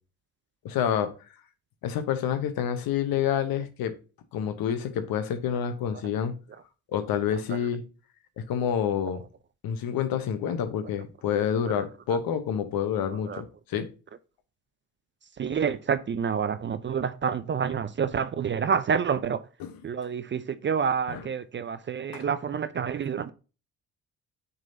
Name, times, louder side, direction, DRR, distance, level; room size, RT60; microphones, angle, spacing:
voice 1, 0.6-1.1 1.8-3.9 4.3-6.3 6.9-7.8 8.4-9.2 9.6-13.9 19.6-19.8 21.1-21.3 22.1-22.2, left 8 dB, 60° left, 1.0 m, -28 dB
voice 2, 13.1-13.4 15.4-19.4 19.8-23.3, right 7 dB, 30° right, 0.5 m, -28 dB
8.9 x 4.0 x 2.8 m
hypercardioid pair, 50°, 40 cm